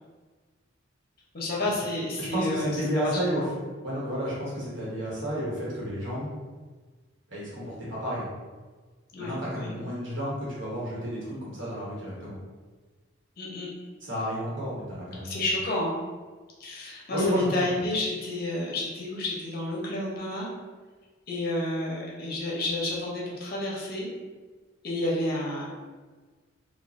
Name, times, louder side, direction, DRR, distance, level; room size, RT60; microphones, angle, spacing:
voice 1, 1.3-3.5 9.1-9.7 13.4-13.7 15.2-16.0 16.6-20.5 21.3-24.1 24.8-25.7, left 1 dB, 45° left, -4 dB, 0.7 m, -30 dB
voice 2, 2.2-3.4 3.8-6.3 7.3-8.3 9.2-12.4 14.0-15.4 17.1-17.7, equal, 60° right, -7 dB, 1.0 m, -31 dB
3.0 x 2.2 x 2.5 m, 1.4 s
head